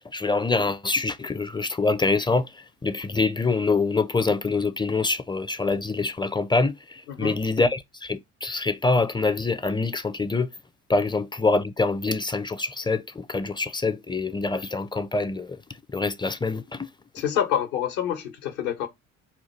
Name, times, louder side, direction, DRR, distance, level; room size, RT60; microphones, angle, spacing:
voice 1, 0.1-10.5 10.9-15.6 15.9-16.9, left 3 dB, 10° left, 0.4 m, -25 dB
voice 2, 17.1-18.9, left 9 dB, 75° left, 1.2 m, -27 dB
4.3 x 2.3 x 4.3 m
hypercardioid pair, 55°, 38 cm